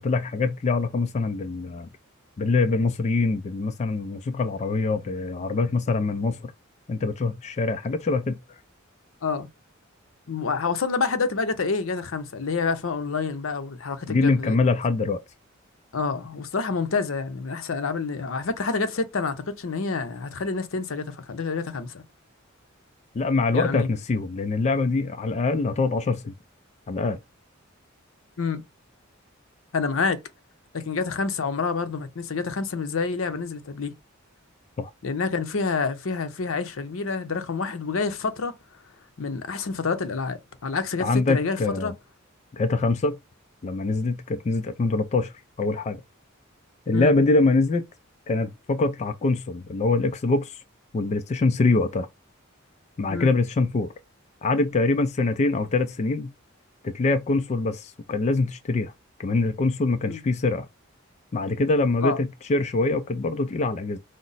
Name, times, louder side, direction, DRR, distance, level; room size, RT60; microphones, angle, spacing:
voice 1, 0.0-1.9 2.4-6.5 6.9-8.4 14.1-15.2 23.1-26.3 26.9-27.2 34.8-34.9 41.0-41.9 42.5-43.2 43.6-46.0 46.9-47.9 48.3-50.6 50.9-52.1 53.0-53.9 54.4-56.3 56.8-58.9 59.2-60.7 61.3-64.0, left 3 dB, 35° left, 0.3 m, -24 dB
voice 2, 10.3-14.6 15.9-22.0 23.5-23.9 28.4-28.6 29.7-30.2 30.7-33.9 35.0-38.5 39.2-41.9 46.9-47.1 53.1-53.3 60.1-60.2 62.0-62.2, left 4 dB, 75° left, 0.7 m, -28 dB
5.0 x 2.0 x 3.9 m
head